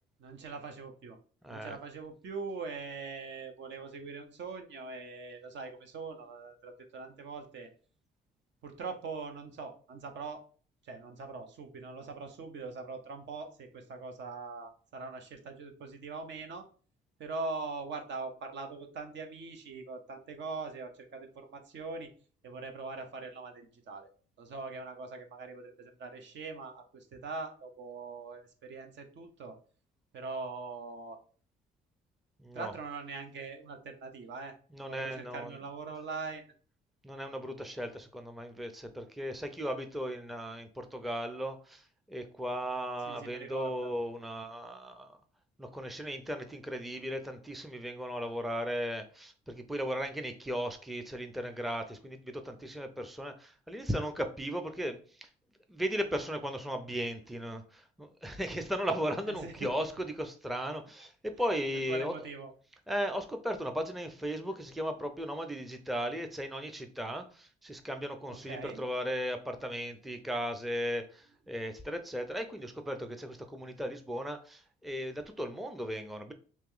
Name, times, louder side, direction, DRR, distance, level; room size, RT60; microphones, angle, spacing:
voice 1, 0.2-1.2 1.5-7.7 8.6-10.4 10.8-16.7 17.2-22.1 22.4-24.1 24.4-29.6 30.1-31.2 32.5-34.6 34.9-36.5 43.1-43.9 59.3-59.7 61.9-62.5 68.3-68.8, right 4 dB, 65° right, 5 dB, 0.8 m, -42 dB
voice 2, 1.4-1.8 32.4-32.7 34.7-35.6 37.0-45.2 45.6-55.3 55.7-62.3 62.9-76.3, equal, ahead, 6 dB, 0.5 m, -36 dB
3.1 x 2.9 x 3.7 m, 0.41 s
cardioid pair, 90°, 20 cm